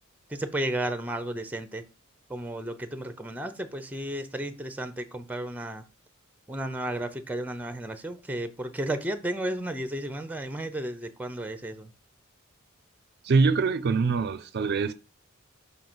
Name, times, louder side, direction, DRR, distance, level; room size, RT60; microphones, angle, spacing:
voice 1, 0.3-1.8 2.3-5.8 6.5-11.9, right 1 dB, 10° right, 0.6 m, -33 dB
voice 2, 13.2-14.9, right 4 dB, 55° right, 0.4 m, -24 dB
5.5 x 3.8 x 6.0 m
head